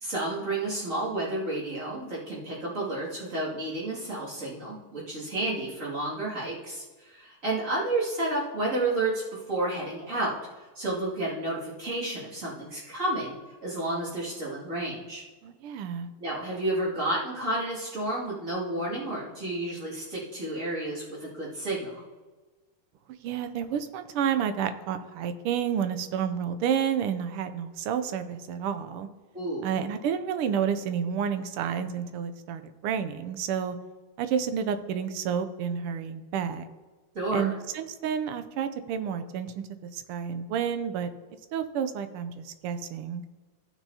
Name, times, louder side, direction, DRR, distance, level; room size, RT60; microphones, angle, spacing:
voice 1, 0.0-9.2 9.5-13.3 13.6-15.2 16.2-22.0 29.3-29.7 37.1-37.5, right 2 dB, 35° right, -7 dB, 2.6 m, -31 dB
voice 2, 15.4-16.1 23.2-29.1 29.6-33.8 34.2-36.7 37.3-39.6 39.9-41.1 41.5-43.2, right 8 dB, 85° right, 10 dB, 1.6 m, -30 dB
15.0 x 6.0 x 2.8 m, 1.3 s
omnidirectional pair, 2.4 m